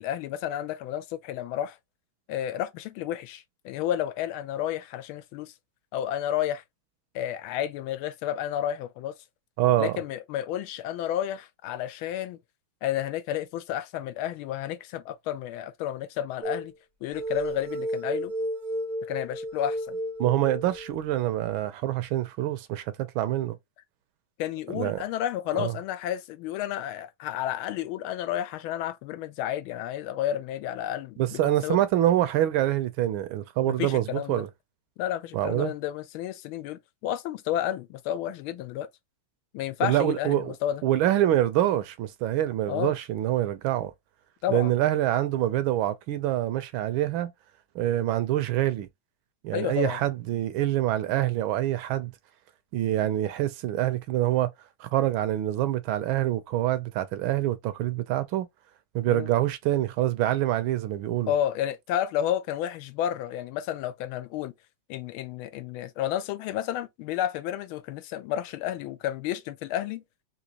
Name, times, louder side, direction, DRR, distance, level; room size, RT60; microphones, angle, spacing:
voice 1, 0.0-1.8 2.3-5.5 5.9-6.6 7.1-9.1 9.8-12.4 12.8-16.7 17.0-18.3 19.1-20.0 24.4-31.8 33.7-34.4 35.0-38.9 39.5-40.8 42.7-42.9 44.4-44.7 49.5-50.0 59.1-59.3 61.3-64.5 64.9-70.0, left 11 dB, 80° left, 1.4 m, -31 dB
voice 2, 9.6-10.0 20.2-23.6 24.7-25.0 25.5-25.8 31.2-34.5 35.3-35.7 39.8-40.5 40.8-43.9 44.5-47.3 47.7-48.9 49.4-52.1 52.7-54.5 54.8-58.5 58.9-61.3, right 13 dB, 75° right, 1.4 m, -26 dB
sound 1, 16.4-16.7 17.1-20.9, right 1 dB, 55° right, 0.5 m, -32 dB
3.9 x 2.8 x 2.8 m
omnidirectional pair, 2.3 m